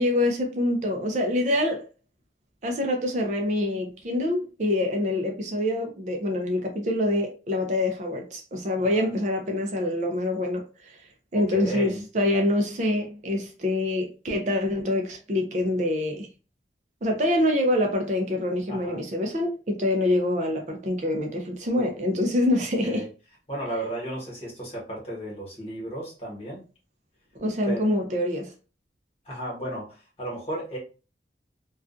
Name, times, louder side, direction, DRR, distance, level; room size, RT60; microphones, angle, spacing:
voice 1, 0.0-1.8 2.6-16.3 17.0-23.0 27.4-28.5, left 1 dB, 40° right, 0.4 m, -25 dB
voice 2, 8.8-9.1 11.3-12.0 18.7-19.0 22.8-23.1 23.5-26.6 27.7-27.9 29.2-30.8, right 1 dB, 35° left, 1.2 m, -34 dB
2.5 x 2.3 x 2.4 m
head